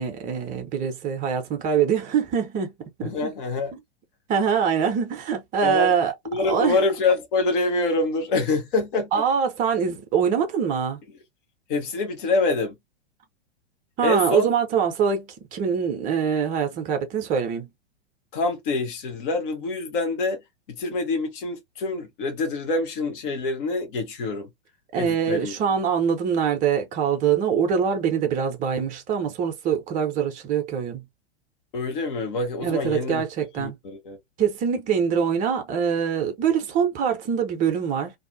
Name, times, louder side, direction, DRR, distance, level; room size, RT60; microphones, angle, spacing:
voice 1, 0.0-2.7 3.0-3.3 4.3-6.1 6.4-6.8 9.1-11.0 14.0-17.7 24.9-31.0 32.6-33.8 34.4-38.1, right 7 dB, 25° right, 0.7 m, -24 dB
voice 2, 3.0-3.7 5.6-5.9 6.2-9.2 11.7-12.7 14.0-14.5 18.3-20.4 20.7-24.5 25.0-25.5 31.7-33.2 33.6-34.2, left 3 dB, 50° left, 1.2 m, -26 dB
2.7 x 2.4 x 2.6 m
figure-of-eight pair, 100°, 34 cm